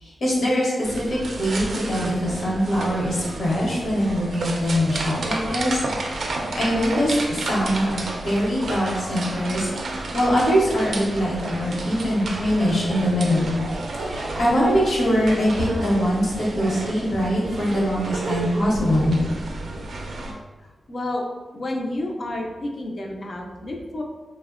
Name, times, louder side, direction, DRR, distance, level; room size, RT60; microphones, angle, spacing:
voice 1, 0.0-5.8 6.3-13.6 14.0-19.2, equal, 70° left, -5 dB, 0.9 m, -23 dB
sound 1, 0.8-20.3, right 2 dB, 65° right, 0.3 m, -31 dB
voice 2, 20.6-21.2 21.5-24.0, left 1 dB, 40° left, 0 dB, 0.4 m, -30 dB
3.4 x 2.0 x 2.4 m, 1.3 s
wide cardioid pair, 150°, 0 cm